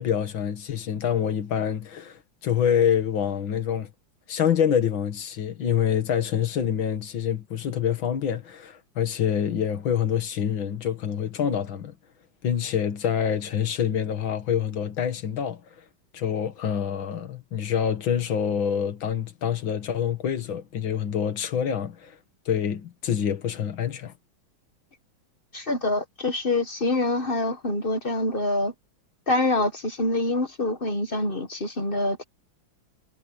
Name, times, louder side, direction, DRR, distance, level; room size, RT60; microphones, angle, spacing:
voice 1, 0.0-3.9 4.3-11.9 12.4-15.6 16.1-22.2 22.5-24.1, left 8 dB, 80° left, 2.4 m, -26 dB
voice 2, 25.5-28.7 29.3-32.2, left 2 dB, 30° left, 1.2 m, -25 dB
omnidirectional pair, 2.1 m